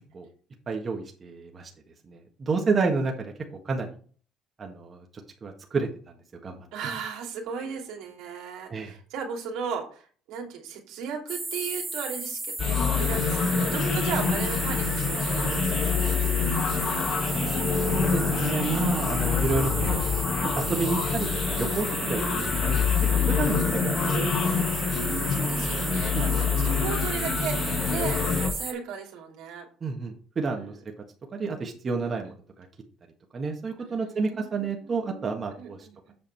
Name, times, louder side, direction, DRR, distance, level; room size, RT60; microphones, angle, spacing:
voice 1, 0.7-1.7 2.1-3.9 4.6-5.0 5.4-5.9 6.4-6.6 8.7-8.9 17.3-20.0 20.4-24.7 26.1-26.9 29.8-30.7 31.3-32.7 33.3-35.9, right 4 dB, 40° right, 2 dB, 1.6 m, -30 dB
voice 2, 6.7-15.6 16.0-16.5 22.1-22.3 23.5-23.7 24.9-29.7 30.5-30.7 32.0-32.2 33.8-36.1, right 6 dB, 80° right, 1 dB, 2.5 m, -36 dB
sound 1, 11.3-28.7, right 2 dB, 20° right, 1.4 m, -33 dB
sound 2, 12.6-28.5, left 6 dB, 60° left, 1.4 m, -26 dB
7.8 x 5.3 x 4.5 m, 0.41 s
supercardioid pair, 85°, 0 cm